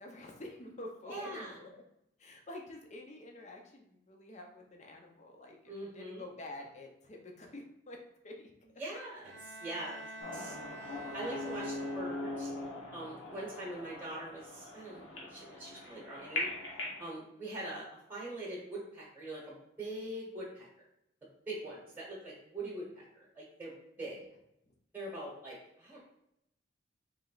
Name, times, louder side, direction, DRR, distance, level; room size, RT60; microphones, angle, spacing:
voice 1, 0.0-1.8 2.2-8.5 10.0-10.2 11.0-11.4 13.3-13.5 24.0-24.1 24.7-24.8, left 1 dB, 35° left, 2 dB, 0.6 m, -49 dB
voice 2, 1.1-1.5 5.7-6.2 8.8-10.0 10.3-12.5 12.9-16.5 17.0-20.7 21.5-24.2 24.9-26.0, right 1 dB, 10° right, -4 dB, 1.0 m, -43 dB
Bowed string instrument, 9.2-12.5, right 1 dB, 70° right, 0.7 m, -48 dB
sound 1, 10.2-17.0, left 2 dB, 80° left, 1.1 m, -41 dB
3.4 x 3.1 x 3.9 m, 0.80 s
head